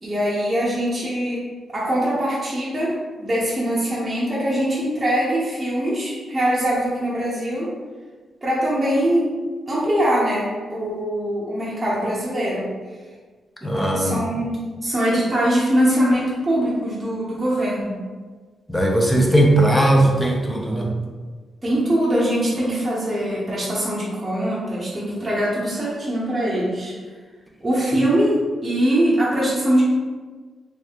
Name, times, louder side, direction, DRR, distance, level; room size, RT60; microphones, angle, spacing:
voice 1, 0.0-1.4 1.7-2.9 3.2-7.7 8.4-9.3 9.7-12.7 13.6-18.0 21.6-26.9 27.6-29.8, equal, 20° right, -8 dB, 1.0 m, -22 dB
voice 2, 13.6-14.2 18.7-20.9, right 1 dB, 10° left, -1 dB, 0.7 m, -18 dB
3.3 x 3.0 x 3.0 m, 1.4 s
cardioid pair, 85°, 0 cm